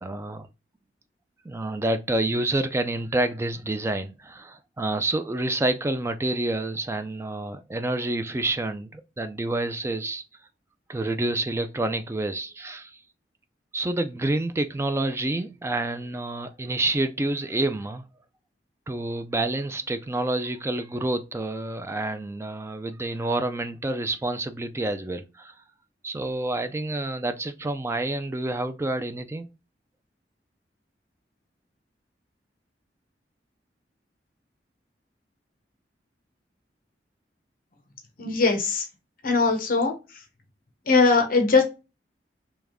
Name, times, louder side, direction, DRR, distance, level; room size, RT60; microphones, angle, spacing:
voice 1, 0.0-0.5 1.5-10.2 10.9-13.0 13.7-18.1 18.9-25.5 26.0-29.5, right 2 dB, 15° right, 0.3 m, -28 dB
voice 2, 38.2-38.9 39.2-40.2 40.9-41.6, left 4 dB, 55° left, 0.9 m, -21 dB
3.4 x 3.1 x 3.5 m
head